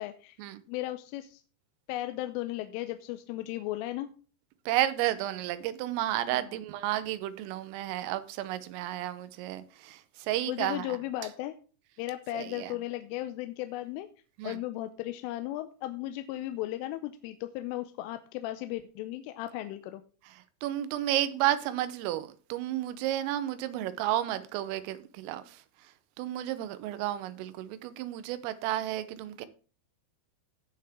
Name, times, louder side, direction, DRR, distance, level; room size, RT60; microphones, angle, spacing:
voice 1, 0.0-0.4 0.7-1.4 1.9-4.1 6.3-6.5 10.4-11.6 12.0-14.1 14.4-20.0, left 15 dB, 85° left, 3.2 m, -36 dB
voice 2, 4.7-11.0 12.3-12.7 14.4-14.6 20.3-25.9 26.2-29.5, right 13 dB, 90° right, 3.5 m, -32 dB
16.5 x 5.7 x 3.6 m
omnidirectional pair, 5.7 m